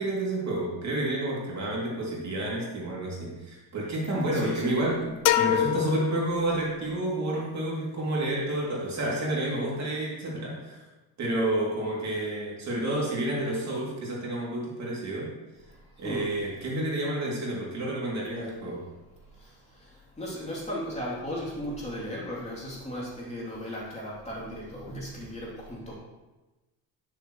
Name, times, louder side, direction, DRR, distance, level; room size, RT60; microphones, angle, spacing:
voice 1, 0.0-10.8 11.2-15.3 16.0-18.8, right 1 dB, 45° right, -4 dB, 2.9 m, -30 dB
voice 2, 4.3-4.8 16.0-16.3 20.2-26.0, equal, 15° left, -6 dB, 3.1 m, -36 dB
sound 1, 5.3-7.0, left 13 dB, 55° left, 0.6 m, -26 dB
10.5 x 7.0 x 3.2 m, 1.1 s
cardioid pair, 105°, 39 cm